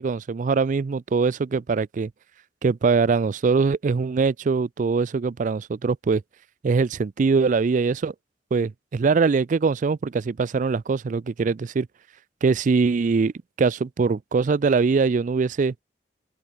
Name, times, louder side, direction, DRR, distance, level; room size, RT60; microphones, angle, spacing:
voice 1, 0.0-2.1 2.6-6.2 6.6-8.1 8.5-11.9 12.4-13.3 13.6-15.7, right 4 dB, 45° right, 0.4 m, -22 dB
open air
head